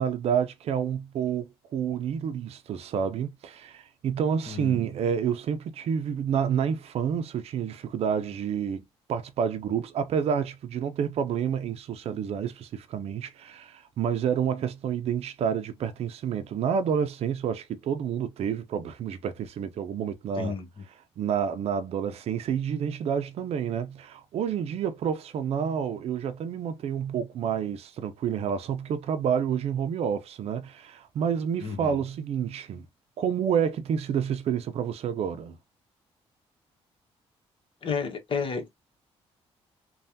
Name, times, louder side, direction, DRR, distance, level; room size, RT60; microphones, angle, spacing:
voice 1, 0.0-8.8 9.1-20.5 21.2-32.9 33.2-35.6, right 8 dB, 65° right, 0.5 m, -29 dB
voice 2, 4.5-4.9 20.4-20.8 31.6-32.0 37.8-38.7, left 5 dB, 50° left, 1.2 m, -32 dB
3.2 x 2.3 x 2.7 m
cardioid pair, 90°, 11 cm